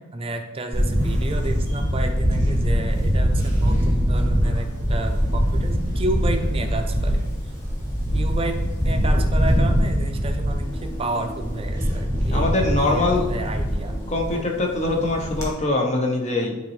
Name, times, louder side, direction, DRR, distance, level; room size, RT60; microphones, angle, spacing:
voice 1, 0.0-7.2 8.1-12.5 12.8-13.9 14.3-14.4, right 2 dB, 25° right, 5 dB, 0.6 m, -31 dB
Camera, 0.7-15.5, equal, 15° left, 1.7 m, -23 dB
voice 2, 12.3-13.3 14.1-16.6, left 2 dB, 35° left, 1 dB, 1.0 m, -23 dB
9.4 x 4.1 x 3.2 m, 1.2 s
head